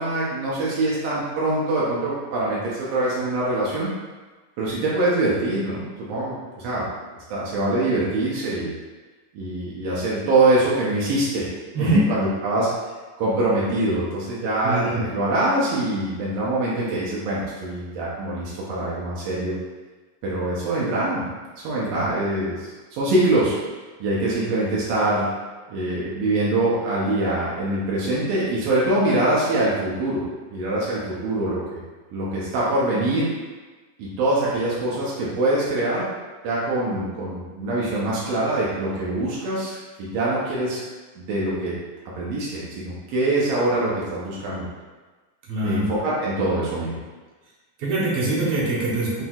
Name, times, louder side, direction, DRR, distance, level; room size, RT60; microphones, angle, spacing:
voice 1, 0.0-3.9 4.6-6.9 7.3-8.7 9.3-11.5 11.8-12.7 13.2-19.5 20.2-21.2 21.6-23.5 24.0-25.3 25.7-30.2 30.5-31.8 32.1-33.3 34.0-36.1 36.4-40.8 41.2-41.8 42.2-44.6 45.6-46.9, right 2 dB, 85° right, -7 dB, 1.4 m, -24 dB
voice 2, 14.6-15.0 21.9-22.1 45.5-45.9 47.8-49.2, right 2 dB, 65° right, -6 dB, 1.7 m, -23 dB
6.0 x 2.7 x 2.3 m, 1.3 s
omnidirectional pair, 3.9 m